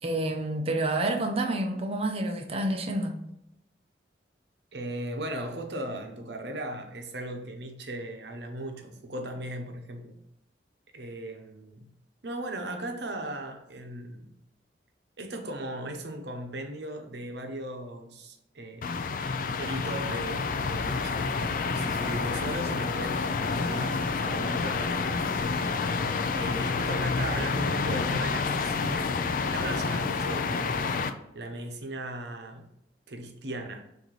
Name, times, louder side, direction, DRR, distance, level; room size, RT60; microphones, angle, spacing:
voice 1, 0.0-3.2, right 1 dB, 35° right, 4 dB, 0.6 m, -28 dB
voice 2, 4.7-10.2 10.9-11.9 12.2-14.3 15.2-25.2 26.3-29.1 29.5-31.0 31.3-32.6 33.1-33.8, right 1 dB, 70° right, 4 dB, 0.8 m, -37 dB
sound 1, 18.8-31.1, left 4 dB, 50° left, 0.4 m, -29 dB
Human voice, 21.9-22.5 25.2-25.7 28.6-29.0, equal, ahead, 1.1 m, -45 dB
6.3 x 2.6 x 3.1 m, 0.83 s
head